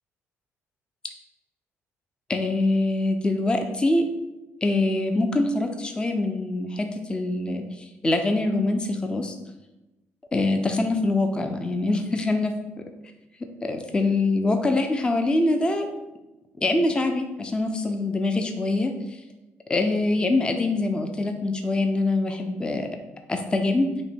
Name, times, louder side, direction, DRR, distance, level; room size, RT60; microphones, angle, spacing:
voice 1, 2.3-4.0 4.6-7.6 8.0-9.3 10.3-12.5 13.6-15.9 16.6-18.9 19.7-22.9 23.3-23.9, left 2 dB, 15° left, 5 dB, 0.5 m, -24 dB
5.7 x 2.2 x 4.3 m, 1.0 s
cardioid pair, 105°, 5 cm